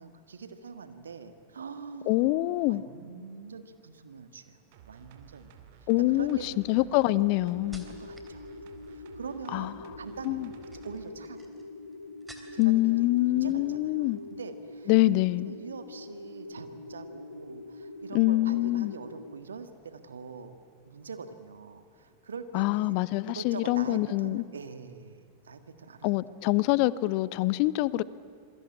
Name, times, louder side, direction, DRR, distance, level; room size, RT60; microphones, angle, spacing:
voice 1, 0.0-2.3 2.6-4.6 4.9-5.5 5.8-7.0 7.8-8.5 8.9-10.5 10.8-11.5 12.5-14.9 15.5-20.6 20.8-23.0 23.2-26.1, right 5 dB, 70° right, 1.8 m, -44 dB
voice 2, 2.1-2.8 5.9-7.9 9.5-9.7 10.2-10.5 12.6-14.2 14.9-15.5 18.1-18.9 22.5-24.4 26.0-28.0, left 18 dB, 45° left, 0.7 m, -25 dB
sound 1, 4.7-11.0 11.4-11.5, right 8 dB, 50° right, 2.2 m, -54 dB
sound 2, 4.9-5.3 6.0-8.4 8.7-9.2 10.4-12.8 13.1-13.8 14.1-14.3, right 1 dB, 10° right, 3.4 m, -54 dB
sound 3, 7.1-19.3, left 2 dB, 80° left, 0.9 m, -44 dB
27.0 x 22.0 x 8.7 m
figure-of-eight pair, 90°, 0 cm